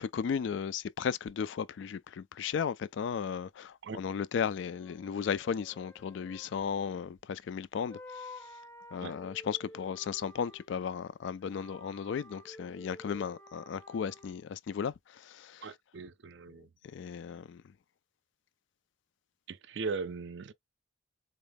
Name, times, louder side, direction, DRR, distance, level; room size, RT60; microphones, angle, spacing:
voice 1, 0.0-8.3 8.9-14.9 15.2-15.7 16.9-17.6, left 7 dB, 65° left, 0.3 m, -35 dB
sound 1, 1.3-1.4 4.8-7.6 7.9-10.8 11.4-14.4, left 1 dB, 10° left, 0.5 m, -51 dB
voice 2, 15.6-16.7 19.5-20.5, right 4 dB, 60° right, 0.4 m, -39 dB
4.1 x 2.2 x 3.4 m
head